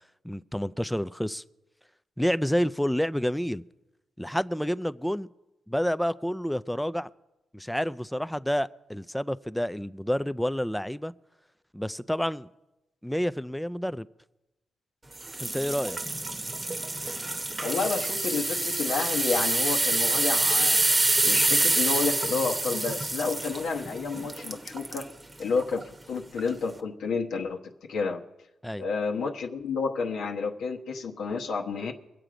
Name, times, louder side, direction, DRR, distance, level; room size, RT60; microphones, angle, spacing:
voice 1, 0.2-1.4 2.2-3.6 4.2-5.3 5.7-7.1 7.5-11.1 11.7-12.5 13.0-14.1 15.4-16.0 28.6-28.8, equal, 5° left, 0.4 m, -29 dB
sound 1, 15.2-25.1 25.6-25.8 26.4-26.5, right 2 dB, 25° right, 1.0 m, -27 dB
voice 2, 17.6-20.8 21.2-25.1 25.4-28.2 28.8-31.9, left 4 dB, 85° left, 1.0 m, -30 dB
23.0 x 7.9 x 5.0 m
cardioid pair, 95°, 0 cm